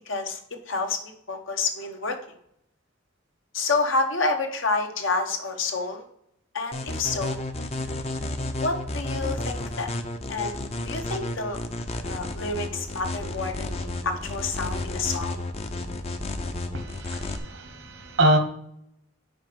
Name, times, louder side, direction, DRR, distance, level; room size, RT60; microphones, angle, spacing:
voice 1, 0.1-0.4 0.7-2.2 3.5-6.1 6.5-7.5 8.6-9.9 10.3-10.6 10.8-11.6 12.0-15.4, left 3 dB, 70° left, 5 dB, 1.1 m, -28 dB
sound 1, 6.7-17.4, left 2 dB, 30° left, 0.6 m, -32 dB
voice 2, 16.7-18.4, right 1 dB, 75° right, 6 dB, 1.2 m, -24 dB
5.2 x 5.0 x 5.9 m, 0.73 s
head